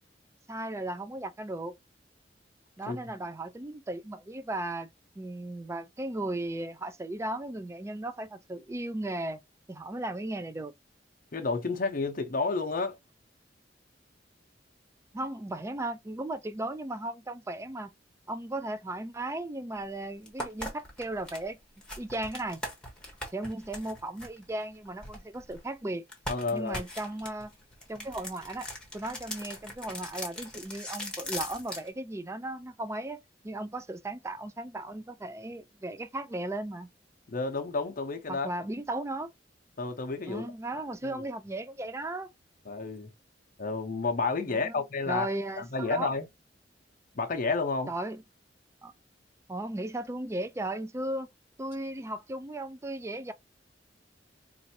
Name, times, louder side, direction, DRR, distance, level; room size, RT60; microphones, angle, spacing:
voice 1, 0.5-1.8 2.8-4.9 5.2-9.4 9.7-10.7 15.1-17.9 18.3-21.6 22.0-22.6 23.3-26.0 26.5-27.5 27.9-28.7 28.9-36.9 38.3-39.3 40.3-42.3 44.5-46.1 47.9-48.2 48.8-48.9 49.5-51.3 51.6-53.3, right 1 dB, 15° right, 0.4 m, -36 dB
voice 2, 11.3-13.0 26.3-26.8 37.3-38.5 39.8-40.4 41.0-41.2 42.7-43.1 43.6-45.3 45.6-46.3 47.1-47.9, left 4 dB, 50° left, 0.7 m, -31 dB
sound 1, 19.8-19.9 20.3-25.6 26.1-31.9, left 1 dB, 5° left, 1.2 m, -40 dB
4.1 x 2.6 x 2.7 m
head